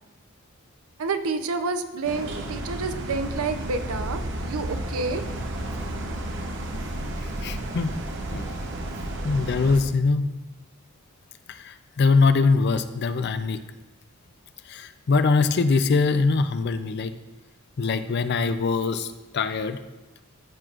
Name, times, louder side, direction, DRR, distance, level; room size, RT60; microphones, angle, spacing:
voice 1, 1.0-5.2, right 4 dB, 90° right, 9 dB, 0.6 m, -29 dB
sound 1, 2.0-9.8, right 1 dB, 60° right, 0.8 m, -32 dB
voice 2, 7.4-7.9 8.3-8.5 9.2-10.3 11.5-13.6 14.7-17.1 17.8-19.8, left 4 dB, 50° left, 10 dB, 0.4 m, -23 dB
14.0 x 6.1 x 2.5 m, 1.1 s
head